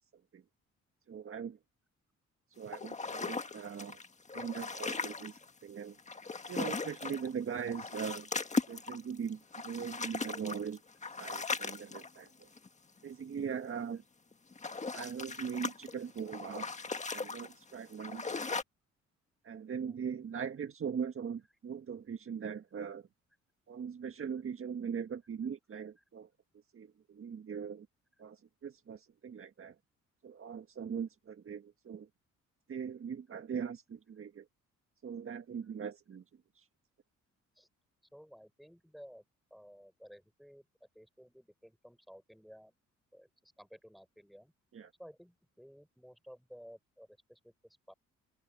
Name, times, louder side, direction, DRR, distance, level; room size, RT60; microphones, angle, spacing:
voice 1, 1.1-1.6 2.6-4.0 4.3-6.0 6.5-8.3 8.7-10.8 11.2-12.5 13.0-14.0 14.9-16.7 17.1-18.3 19.4-23.1 23.7-26.3 26.7-27.9 28.2-29.7 30.2-32.1 32.7-34.5 35.0-36.2 36.5-36.7 44.7-44.9, right 7 dB, 45° right, 1.7 m, -40 dB
sound 1, 2.7-5.5 6.0-7.3 7.6-12.7 14.3-18.6, left 4 dB, 25° left, 1.6 m, -38 dB
voice 2, 3.0-3.3 19.8-20.2 37.5-37.7 38.1-39.2 39.5-40.7 40.9-42.7 43.1-44.5 45.0-47.9, equal, ahead, 4.5 m, -55 dB
open air
cardioid pair, 90°, 30 cm